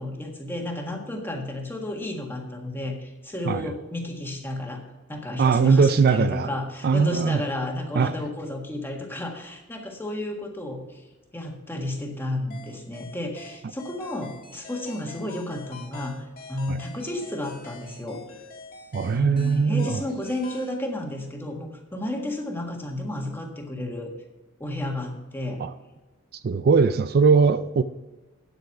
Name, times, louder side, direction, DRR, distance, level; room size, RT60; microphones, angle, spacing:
voice 1, 0.0-4.8 5.1-11.0 11.3-16.2 16.5-18.2 19.1-24.1 24.6-25.6, left 1 dB, 10° left, 1 dB, 1.6 m, -32 dB
voice 2, 5.4-6.5 6.8-7.4 8.0-8.1 16.7-16.8 18.9-20.0 25.6-25.7 26.4-27.8, right 5 dB, 50° right, 12 dB, 0.4 m, -20 dB
sound 1, 12.5-20.8, left 4 dB, 45° left, 1.8 m, -44 dB
9.0 x 8.0 x 5.8 m, 1.2 s
head